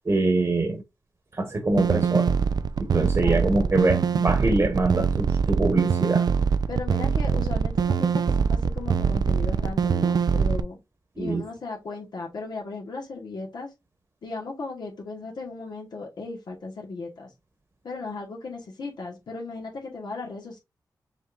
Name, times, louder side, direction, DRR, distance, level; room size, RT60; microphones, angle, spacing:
voice 1, 0.0-0.8 1.3-2.3 2.8-6.3 11.2-11.4, right 2 dB, 40° right, 1.2 m, -24 dB
sound 1, 1.7-10.6, right 6 dB, 65° right, 0.4 m, -23 dB
voice 2, 3.0-3.8 6.7-10.8 11.2-13.7 14.2-17.3 17.8-20.6, left 3 dB, 75° left, 1.3 m, -36 dB
5.4 x 3.3 x 2.5 m
cardioid pair, 60°, 7 cm